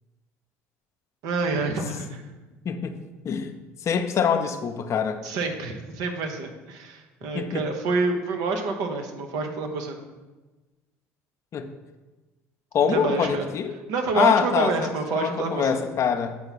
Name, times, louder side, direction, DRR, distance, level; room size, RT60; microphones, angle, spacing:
voice 1, 1.2-2.2 5.2-10.0 12.9-13.5 13.9-15.8, right 3 dB, 70° right, 4 dB, 0.9 m, -27 dB
voice 2, 2.6-2.9 3.2-3.5 3.8-5.2 7.3-7.6 11.5-11.7 12.7-13.8 14.1-16.4, left 7 dB, 50° left, 8 dB, 0.6 m, -24 dB
7.5 x 4.4 x 4.1 m, 1.2 s
hypercardioid pair, 65°, 7 cm